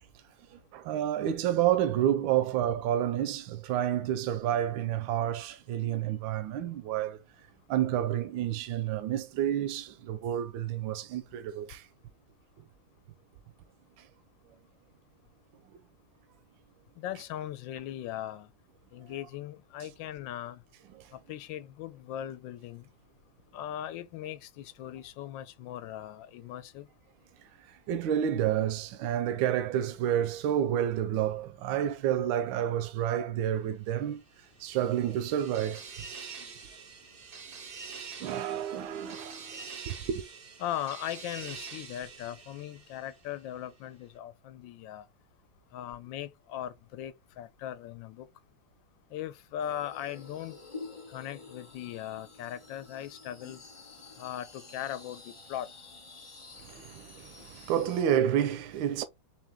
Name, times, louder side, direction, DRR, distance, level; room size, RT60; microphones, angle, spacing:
voice 1, 0.5-7.2 7.7-11.9 27.9-34.2 34.6-36.1 38.2-40.2 56.6-59.0, right 10 dB, 80° right, 1.4 m, -29 dB
voice 2, 17.0-18.5 18.9-20.6 21.1-22.9 23.5-26.9 40.6-45.1 45.7-48.3 49.1-50.6 51.1-53.6 54.2-55.7, left 11 dB, 75° left, 1.3 m, -39 dB
sound 1, 34.3-43.4, right 5 dB, 55° right, 0.6 m, -46 dB
sound 2, 49.6-58.0, left 3 dB, 20° left, 0.8 m, -49 dB
4.5 x 2.9 x 3.5 m
omnidirectional pair, 2.1 m